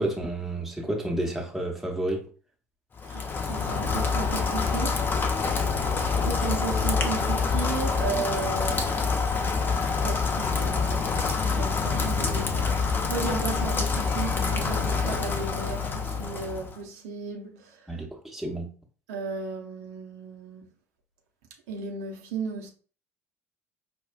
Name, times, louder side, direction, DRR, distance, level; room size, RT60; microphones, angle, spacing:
voice 1, 0.0-2.2 17.9-18.7, right 1 dB, 5° right, 0.9 m, -30 dB
Rain, 3.0-16.8, left 5 dB, 25° left, 0.6 m, -26 dB
voice 2, 3.0-5.5 6.1-9.1 10.0-18.0 19.1-20.7 21.7-22.7, right 5 dB, 65° right, 0.7 m, -35 dB
5.1 x 2.2 x 2.3 m
figure-of-eight pair, 60°, 8 cm